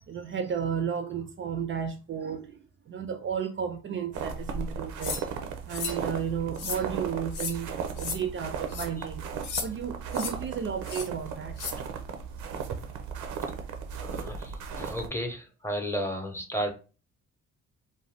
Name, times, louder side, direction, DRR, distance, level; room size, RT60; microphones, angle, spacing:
voice 1, 0.1-2.6 2.9-5.2 5.6-9.3 9.6-11.6, right 7 dB, 40° right, 0.4 m, -33 dB
sound 1, 4.1-15.1, right 6 dB, 85° right, 0.5 m, -36 dB
sound 2, 5.0-5.2 5.7-6.0 6.6-6.8 7.3-7.6 8.0-8.2 8.7-8.9 9.4-9.7 10.1-10.3 10.9-11.1 11.6-11.7, left 6 dB, 85° left, 0.7 m, -34 dB
voice 2, 14.0-16.7, equal, 10° left, 0.7 m, -33 dB
2.5 x 2.2 x 3.3 m
cardioid pair, 90°, 30 cm